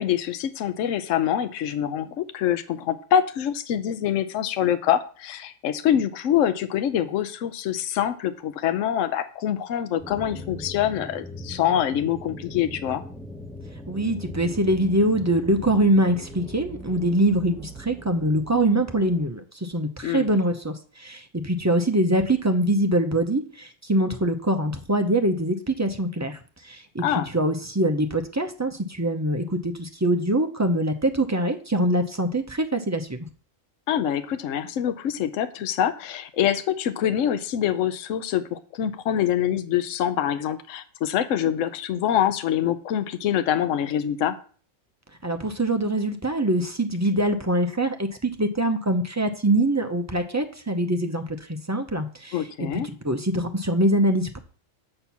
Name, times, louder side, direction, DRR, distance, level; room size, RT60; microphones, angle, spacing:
voice 1, 0.0-13.0 20.0-20.3 27.0-27.3 33.9-44.4 52.3-52.9, left 10 dB, 75° left, 11 dB, 1.0 m, -25 dB
sound 1, 10.0-19.3, left 1 dB, 5° left, 1.0 m, -40 dB
voice 2, 13.9-26.4 26.6-33.2 45.2-51.2 51.7-54.4, right 1 dB, 20° right, 5 dB, 0.5 m, -24 dB
7.7 x 4.4 x 7.0 m, 0.42 s
omnidirectional pair, 1.4 m